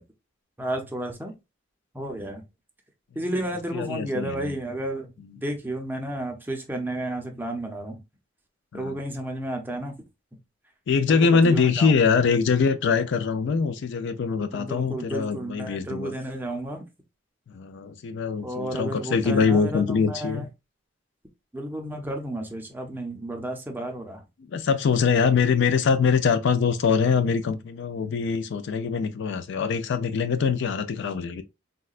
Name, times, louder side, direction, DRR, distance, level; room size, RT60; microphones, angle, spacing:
voice 1, 0.6-1.3 1.9-2.4 3.2-5.1 5.4-8.0 8.7-9.9 11.1-11.9 14.5-16.8 18.4-20.5 21.5-24.2, right 1 dB, 10° right, 0.5 m, -32 dB
voice 2, 3.7-4.5 5.2-5.4 8.7-9.0 10.9-16.1 17.5-20.5 24.5-31.4, left 5 dB, 60° left, 0.4 m, -23 dB
3.7 x 2.1 x 2.4 m
head